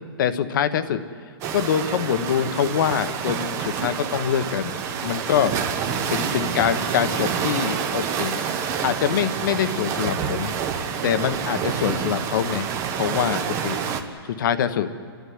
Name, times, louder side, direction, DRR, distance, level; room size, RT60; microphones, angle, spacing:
voice 1, 0.2-1.0 1.5-5.5 6.1-8.4 8.8-10.5 11.0-12.7 13.0-13.8 14.4-14.9, left 8 dB, 50° left, 11 dB, 1.2 m, -24 dB
sound 1, 1.4-14.0, right 7 dB, 20° right, 1.1 m, -28 dB
29.5 x 12.0 x 9.5 m, 2.1 s
hypercardioid pair, 155°, 13 cm